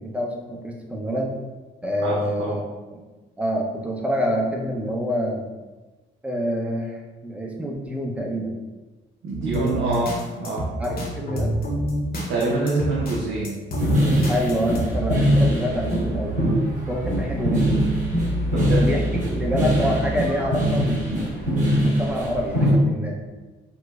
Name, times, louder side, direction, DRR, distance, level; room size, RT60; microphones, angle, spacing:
voice 1, 0.0-1.3 1.8-2.6 3.4-5.5 6.2-8.5 10.8-11.6 14.3-16.4 16.9-17.8 18.8-19.0 19.3-21.3 21.7-23.2, equal, 5° right, -1 dB, 0.6 m, -26 dB
voice 2, 2.0-2.6 9.2-10.7 12.3-13.5 18.4-18.9, right 2 dB, 85° right, -5 dB, 0.6 m, -25 dB
sound 1, 9.3-14.9, equal, 50° left, 0.8 m, -28 dB
sound 2, 13.8-22.7, equal, 40° right, 1.3 m, -22 dB
4.9 x 2.0 x 2.3 m, 1.2 s
cardioid pair, 90°, 20 cm